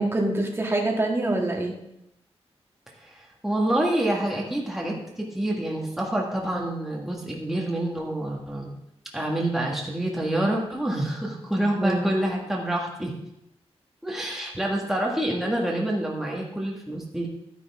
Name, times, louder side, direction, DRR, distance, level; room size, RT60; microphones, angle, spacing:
voice 1, 0.0-1.7 11.8-12.1, right 2 dB, 20° right, 0 dB, 1.6 m, -25 dB
voice 2, 3.0-8.7 9.1-13.1 14.0-17.3, right 1 dB, 5° right, -2 dB, 1.6 m, -27 dB
12.0 x 10.0 x 3.6 m, 0.81 s
wide cardioid pair, 155°, 11 cm